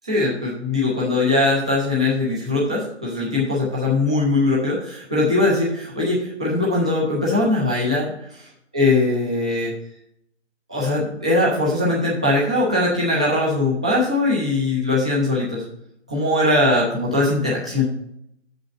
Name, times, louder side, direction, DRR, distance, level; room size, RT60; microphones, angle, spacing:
voice 1, 0.1-8.4 8.7-9.7 10.7-15.6 16.1-17.9, left 2 dB, 5° right, -6 dB, 0.5 m, -21 dB
7.0 x 5.1 x 7.2 m, 0.74 s
figure-of-eight pair, 145°, 35 cm